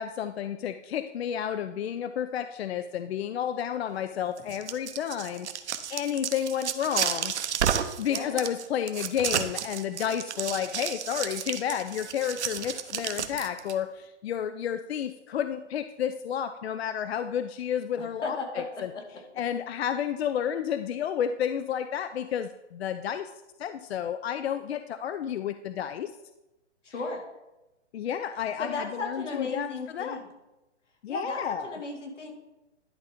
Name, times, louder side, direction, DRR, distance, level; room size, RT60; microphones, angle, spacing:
voice 1, 0.0-5.6 5.9-7.5 8.0-18.9 19.4-23.3 23.6-26.1 27.9-30.2 31.0-31.8, left 9 dB, 60° left, 11 dB, 0.5 m, -31 dB
sound 1, 4.4-13.7, right 8 dB, 70° right, 0.8 m, -32 dB
voice 2, 8.1-8.4 18.0-19.0 19.3-19.4 26.8-27.2 28.6-30.3 31.1-32.3, left 3 dB, 85° left, 1 dB, 2.3 m, -35 dB
11.0 x 3.8 x 5.0 m, 1.0 s
hypercardioid pair, 150°, 35 cm